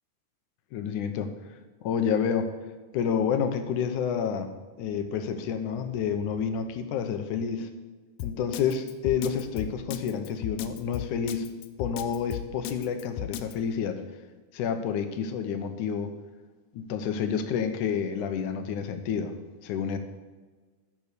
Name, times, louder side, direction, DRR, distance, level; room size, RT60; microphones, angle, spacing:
voice 1, 0.7-1.3 1.8-2.5 2.9-4.5 4.8-7.7 8.2-11.5 11.8-14.0 14.5-16.1 16.7-19.3 19.6-20.0, left 7 dB, 75° left, 8 dB, 2.2 m, -29 dB
Drum kit, 8.2-13.5, left 12 dB, 90° left, 1.4 m, -34 dB
14.0 x 6.1 x 6.8 m, 1.3 s
omnidirectional pair, 3.8 m